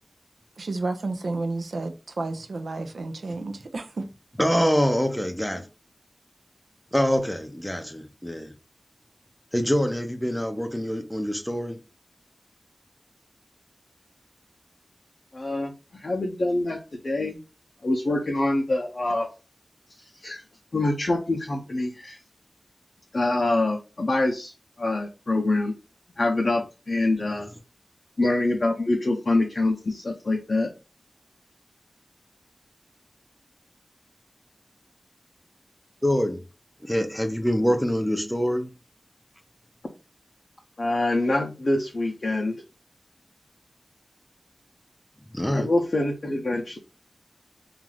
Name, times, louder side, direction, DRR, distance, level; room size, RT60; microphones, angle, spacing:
voice 1, 0.6-4.1, right 2 dB, 90° right, 0.4 m, -31 dB
voice 2, 4.4-5.7 6.9-8.5 9.5-11.8 36.0-36.4 36.8-38.7 45.3-45.7, equal, 5° left, 0.5 m, -25 dB
voice 3, 15.3-17.4 17.8-19.3 20.2-20.4 20.7-22.2 23.1-24.5 24.8-25.7 26.2-27.5 28.2-30.7 40.8-42.6 45.5-46.8, left 2 dB, 60° left, 0.5 m, -25 dB
2.5 x 2.4 x 3.2 m
wide cardioid pair, 70°, 0 cm